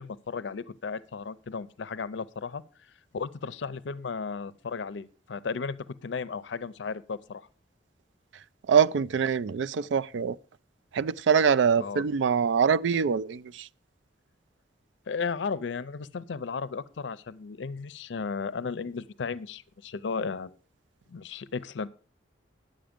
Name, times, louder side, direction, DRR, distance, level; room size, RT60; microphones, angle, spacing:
voice 1, 0.0-2.6 3.1-5.8 6.0-7.5 11.8-12.0 15.1-20.5 21.1-21.9, left 5 dB, 80° left, 0.5 m, -34 dB
voice 2, 8.7-10.4 10.9-13.7, right 6 dB, 85° right, 0.4 m, -24 dB
10.0 x 7.5 x 5.1 m
head